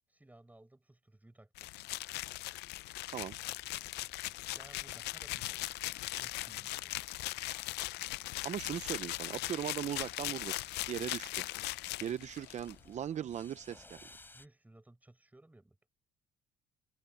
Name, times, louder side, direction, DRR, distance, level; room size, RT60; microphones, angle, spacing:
voice 1, 0.1-1.7 4.5-5.6 6.0-6.9 12.0-12.2 14.3-15.8, right 1 dB, 10° right, 5.1 m, -59 dB
sound 1, 1.6-12.7, left 18 dB, 80° left, 0.5 m, -39 dB
sound 2, 1.6-14.5, left 2 dB, 10° left, 4.9 m, -62 dB
voice 2, 8.4-10.5 10.9-11.4 12.0-14.0, right 10 dB, 45° right, 0.6 m, -38 dB
open air
cardioid pair, 110°, 17 cm